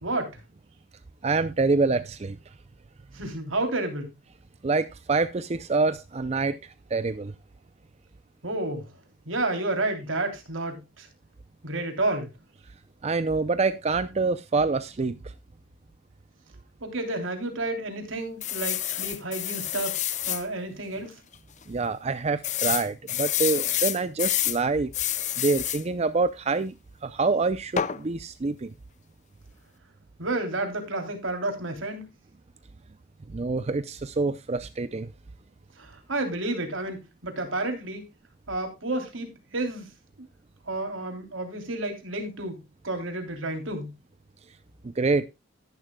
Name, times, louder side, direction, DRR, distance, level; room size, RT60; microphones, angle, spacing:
voice 1, 0.0-0.4 3.1-4.1 8.4-8.9 9.2-11.1 11.6-12.3 16.8-20.0 20.2-21.1 30.2-32.1 35.8-38.1 38.5-39.9 40.7-42.6 42.8-43.9, right 2 dB, 80° right, 3.1 m, -30 dB
voice 2, 1.2-2.4 4.6-7.3 13.0-15.2 21.7-24.9 25.4-26.7 27.0-28.7 33.3-35.1 45.0-45.2, right 3 dB, 35° right, 0.5 m, -26 dB
sound 1, 18.4-20.4 21.0-21.1 21.3-21.4 22.4-24.6 24.9-25.8 27.8-28.0, left 11 dB, 40° left, 0.6 m, -28 dB
12.5 x 11.5 x 2.2 m
head